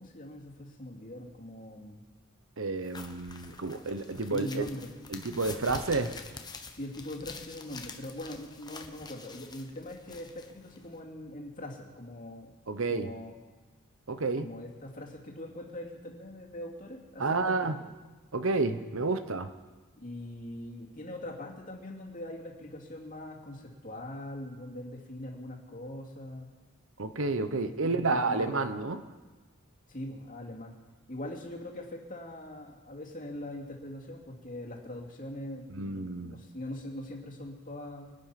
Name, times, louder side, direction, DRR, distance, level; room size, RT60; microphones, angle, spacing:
voice 1, 0.0-2.0 4.3-5.0 6.7-12.5 12.9-13.3 14.4-17.8 20.0-26.5 27.4-28.9 29.9-30.7 31.1-38.1, left 1 dB, 35° left, -1 dB, 2.6 m, -42 dB
voice 2, 2.6-4.7 5.1-6.2 12.7-13.1 14.1-14.5 17.2-17.8 18.3-19.5 27.0-29.0 35.7-36.4, right 3 dB, 60° right, 10 dB, 0.9 m, -30 dB
sound 1, 2.8-11.0, left 4 dB, 20° left, 1.0 m, -46 dB
25.0 x 9.0 x 5.8 m, 1.3 s
head